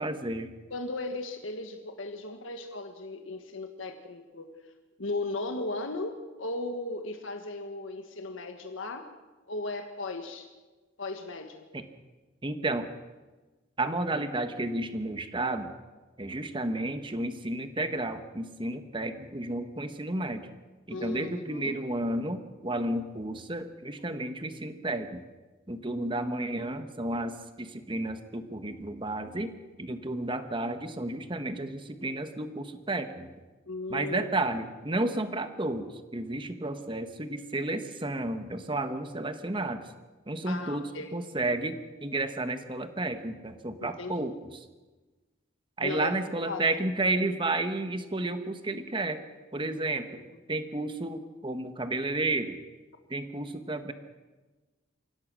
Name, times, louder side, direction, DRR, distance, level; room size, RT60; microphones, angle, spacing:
voice 1, 0.0-0.5 11.7-11.8 12.4-12.9 13.8-15.7 16.2-20.5 20.9-25.2 25.7-29.5 29.8-33.3 33.9-35.9 36.1-39.8 40.3-44.6 45.8-49.2 49.5-50.2 50.5-52.6 53.1-53.9, right 2 dB, 25° right, 9 dB, 1.3 m, -32 dB
voice 2, 0.7-4.5 5.0-9.1 9.5-10.5 11.0-11.7 20.9-21.8 33.7-34.3 40.5-41.2 43.8-44.3 45.8-46.1 46.4-46.6 50.1-50.2, left 2 dB, 80° left, 5 dB, 1.6 m, -36 dB
25.0 x 17.0 x 6.3 m, 1.2 s
head